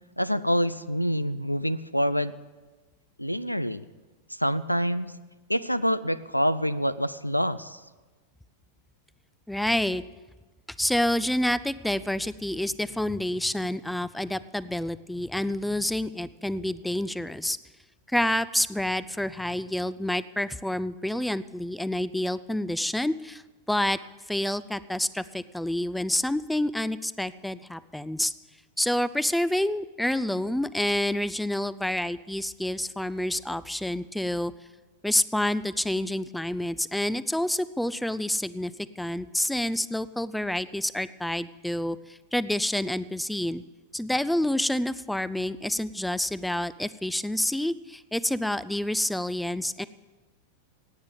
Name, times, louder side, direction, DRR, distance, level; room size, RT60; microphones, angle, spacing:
voice 1, 0.2-2.3 3.2-3.9 4.4-5.1 5.5-7.8, equal, 90° left, 16 dB, 0.4 m, -26 dB
voice 2, 9.5-10.0 10.8-17.6 18.1-23.4 23.7-24.0 24.3-28.3 28.8-34.5 35.0-43.6 43.9-49.9, left 1 dB, 5° left, 17 dB, 0.4 m, -28 dB
16.5 x 9.5 x 7.1 m, 1.3 s
figure-of-eight pair, 90°, 0 cm